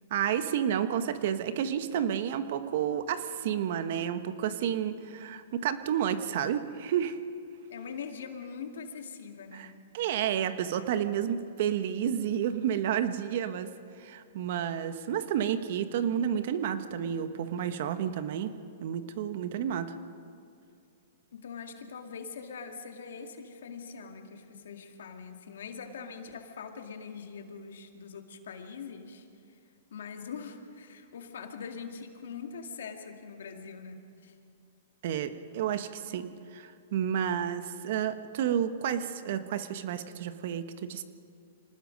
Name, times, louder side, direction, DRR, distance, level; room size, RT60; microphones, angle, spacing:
voice 1, 0.1-7.2 9.5-9.7 9.9-13.7 14.0-18.5 18.8-20.0 35.0-41.0, right 9 dB, 60° right, 10 dB, 1.2 m, -30 dB
voice 2, 7.7-9.8 21.3-29.6 29.9-34.4, left 6 dB, 80° left, 4 dB, 2.1 m, -43 dB
25.5 x 19.0 x 5.2 m, 2.4 s
hypercardioid pair, 135°, 0 cm